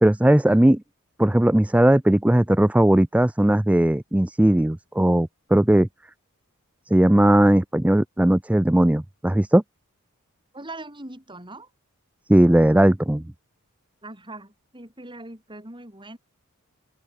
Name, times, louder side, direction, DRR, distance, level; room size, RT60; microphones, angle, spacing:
voice 1, 0.0-0.8 1.2-5.9 6.9-9.6 12.3-13.2, right 1 dB, 5° right, 0.4 m, -18 dB
voice 2, 10.5-11.7 14.0-16.2, right 2 dB, 20° right, 6.8 m, -41 dB
open air
head